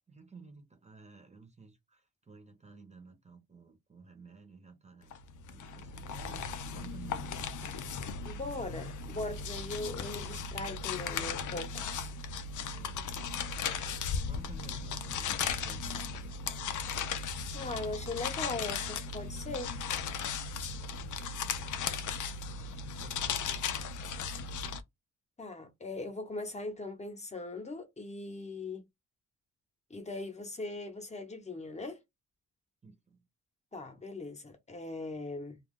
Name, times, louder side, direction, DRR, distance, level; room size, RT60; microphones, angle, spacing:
voice 1, 0.1-5.1 5.5-7.8 12.6-13.1 14.2-16.7 20.7-21.2 22.5-23.6 32.8-33.3, right 4 dB, 20° right, 0.9 m, -54 dB
sound 1, 5.1-24.8, left 6 dB, 70° left, 0.5 m, -37 dB
voice 2, 8.2-11.9 17.5-19.8 25.4-28.8 29.9-32.0 33.7-35.6, left 2 dB, 20° left, 0.9 m, -40 dB
2.4 x 2.3 x 3.6 m
cardioid pair, 110°, 31 cm